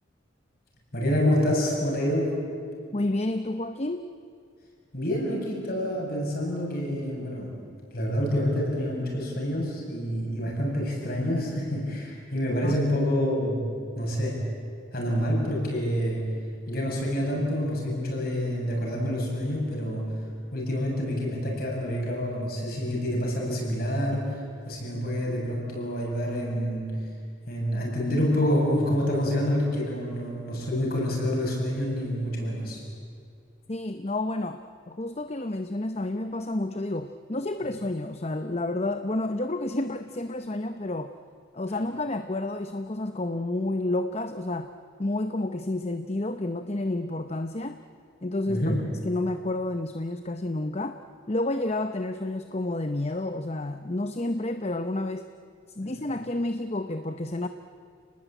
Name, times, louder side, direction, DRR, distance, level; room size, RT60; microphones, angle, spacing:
voice 1, 0.9-2.4 4.9-7.6 7.9-13.6 14.0-14.4 14.9-16.3 16.7-20.2 20.5-27.0 27.5-32.8 48.5-48.8 55.8-55.9, equal, 50° left, -1 dB, 7.6 m, -27 dB
voice 2, 2.9-4.0 12.6-12.8 33.7-34.6 34.9-41.1 41.5-44.7 45.0-47.8 48.2-48.6 49.0-51.0 51.3-55.3 55.7-57.5, left 2 dB, 35° left, 9 dB, 0.8 m, -30 dB
29.5 x 19.5 x 9.0 m, 2.3 s
head